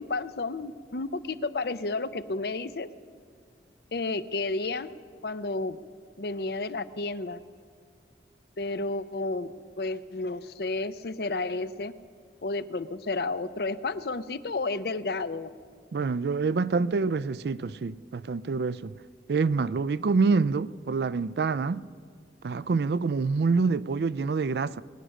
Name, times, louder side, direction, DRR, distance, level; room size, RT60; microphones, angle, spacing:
voice 1, 0.0-2.9 3.9-4.9 5.2-5.8 6.2-7.4 8.6-11.9 12.4-15.5, left 3 dB, 60° left, 0.6 m, -31 dB
voice 2, 15.9-19.0 19.3-21.9 22.4-24.8, right 4 dB, 65° right, 0.4 m, -26 dB
22.0 x 10.0 x 6.5 m
head